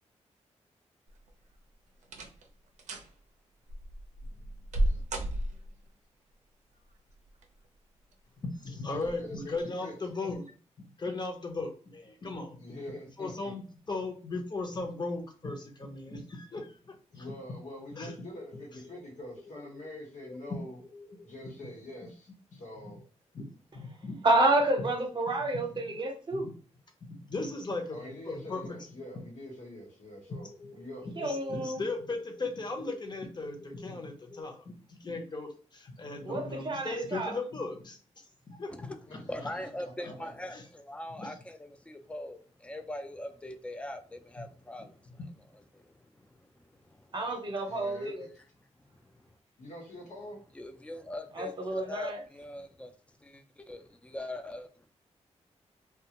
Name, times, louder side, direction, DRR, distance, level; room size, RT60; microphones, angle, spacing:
sound 1, 1.1-1.5 2.0-2.5 2.8-3.1 3.7-5.9 7.1-7.7 8.1-8.2 8.9-9.2 9.5-9.6, right 1 dB, 80° right, 0.5 m, -33 dB
voice 1, 4.7-5.0 9.0-9.5 9.8-9.9 12.6-13.5 17.1-20.8 21.2-23.0 27.9-31.0 39.1-39.7 40.0-40.3 47.6-48.3 49.6-50.4, left 1 dB, 80° left, 1.1 m, -45 dB
voice 2, 8.5-10.5 11.0-12.6 13.2-17.3 18.0-18.1 20.2-20.4 22.0-22.1 23.3-23.5 23.7-24.2 24.8-24.9 25.9-26.0 26.4-26.5 27.2-28.8 31.2-39.0 39.4-39.5 40.0-40.1 40.5-40.6 41.2-41.4 44.4-44.5 45.2-45.3, left 3 dB, 40° left, 0.7 m, -37 dB
sound 2, 18.0-19.0 19.4-19.9 20.3-21.2 23.0-23.1 25.4-25.5 28.4-28.5 28.7-29.4 29.6-29.8 30.3-31.6 31.9-33.9 34.3-34.4, left 3 dB, 55° left, 1.1 m, -50 dB
voice 3, 24.2-26.5 31.2-31.8 36.2-37.4 47.1-48.2 51.4-52.2, right 2 dB, 40° right, 0.7 m, -29 dB
voice 4, 39.3-45.2 45.7-47.1 48.9-49.3 50.5-52.9 53.2-54.9, left 1 dB, 10° left, 0.4 m, -42 dB
2.4 x 2.3 x 2.9 m
cardioid pair, 70°, 12 cm